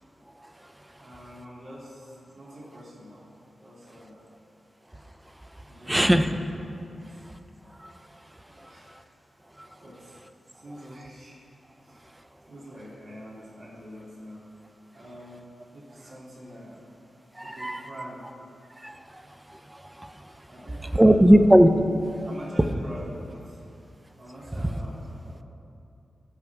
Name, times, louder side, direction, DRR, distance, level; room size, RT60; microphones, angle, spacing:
voice 1, 0.4-0.7 5.9-6.3 7.8-8.2 8.6-9.0 9.6-9.7 17.3-17.9 18.8-20.4 20.9-21.7, equal, 15° right, 7 dB, 0.7 m, -21 dB
voice 2, 0.9-3.3 3.6-4.3 5.7-6.5 6.9-7.2 8.4-9.0 9.8-10.2 10.5-11.4 11.8-12.1 12.5-14.5 14.9-16.8 17.4-18.3 20.5-21.4 22.2-23.6 24.2-25.4, equal, 70° right, -7 dB, 2.9 m, -45 dB
18.5 x 6.9 x 3.6 m, 2.7 s
cardioid pair, 65°, 0 cm